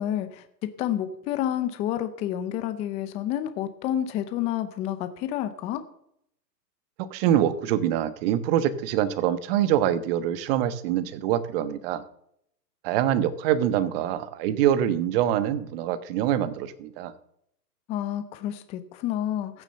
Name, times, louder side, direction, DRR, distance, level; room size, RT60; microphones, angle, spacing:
voice 1, 0.0-5.8 17.9-19.6, left 11 dB, 15° left, 10 dB, 0.6 m, -29 dB
voice 2, 7.0-12.0 12.8-17.1, right 11 dB, 35° right, 15 dB, 1.3 m, -25 dB
15.0 x 7.2 x 7.8 m, 0.73 s
hypercardioid pair, 135°, 50 cm